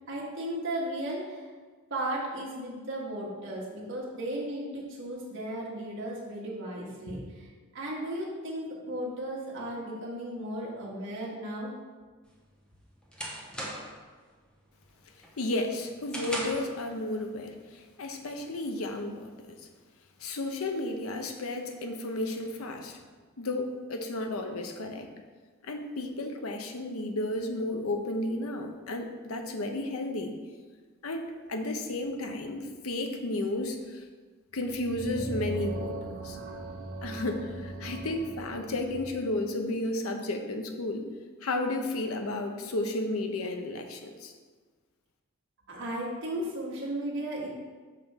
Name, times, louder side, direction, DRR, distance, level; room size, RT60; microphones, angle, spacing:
voice 1, 0.1-1.5 1.9-7.5 7.7-11.8 45.7-47.5, right 1 dB, 60° right, -5 dB, 1.3 m, -35 dB
sound 1, 12.3-14.1 14.5-14.8 15.2-16.8, equal, 5° left, 0.9 m, -38 dB
voice 2, 15.4-19.6 20.2-23.0 23.4-25.1 25.6-30.4 31.0-34.0 34.5-36.0 36.2-36.4 37.0-41.1 41.4-44.3, left 2 dB, 85° left, 5 dB, 0.7 m, -33 dB
sound 2, 34.5-39.2, right 1 dB, 80° right, 0.9 m, -39 dB
5.7 x 3.5 x 5.6 m, 1.4 s
head